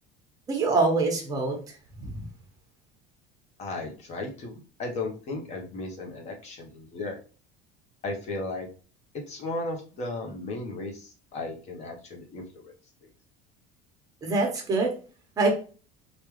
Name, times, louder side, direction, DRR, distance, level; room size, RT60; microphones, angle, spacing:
voice 1, 0.5-1.5 2.0-2.2 14.2-14.9 15.4-15.5, right 3 dB, 20° right, 1 dB, 1.1 m, -24 dB
voice 2, 3.6-7.2 8.0-8.7 9.3-12.7, left 2 dB, 35° left, 2 dB, 0.9 m, -35 dB
3.5 x 2.4 x 3.1 m, 0.37 s
cardioid pair, 145°, 18 cm